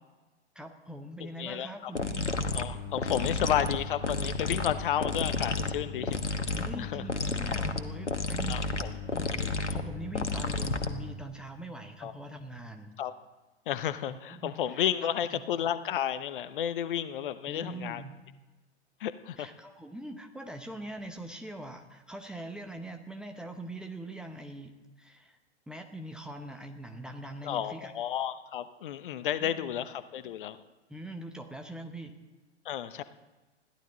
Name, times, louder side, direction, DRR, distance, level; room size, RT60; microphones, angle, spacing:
voice 1, 0.5-2.3 3.1-3.3 6.5-12.9 14.1-15.4 17.5-18.2 19.4-25.4 25.7-27.9 29.4-29.7 30.9-32.2, right 1 dB, ahead, 4 dB, 0.8 m, -43 dB
voice 2, 1.2-1.9 2.5-6.2 6.8-7.0 8.5-9.0 12.0-12.1 13.0-13.1 13.7-18.0 19.0-19.5 27.4-30.6 32.6-33.0, left 10 dB, 50° left, 13 dB, 0.9 m, -32 dB
sound 1, 1.9-11.2, left 4 dB, 80° left, 1.2 m, -32 dB
21.0 x 14.5 x 4.0 m, 1.2 s
figure-of-eight pair, 105°, 35 cm